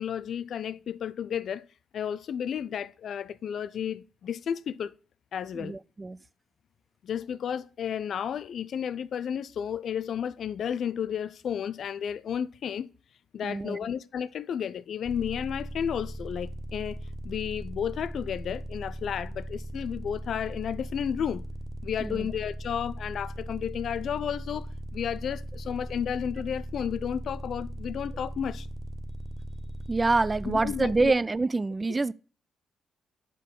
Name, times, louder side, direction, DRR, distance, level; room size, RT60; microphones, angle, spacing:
voice 1, 0.0-1.7 1.9-4.9 5.3-5.8 7.0-12.9 13.3-17.0 17.2-21.5 21.8-28.7 30.5-31.1, left 8 dB, 60° left, 0.4 m, -32 dB
voice 2, 5.5-6.2 13.4-13.8 22.0-22.3 29.9-32.1, right 3 dB, 30° right, 0.3 m, -26 dB
sound 1, 15.0-31.1, equal, ahead, 0.7 m, -39 dB
7.3 x 5.3 x 3.8 m
hypercardioid pair, 40°, 0 cm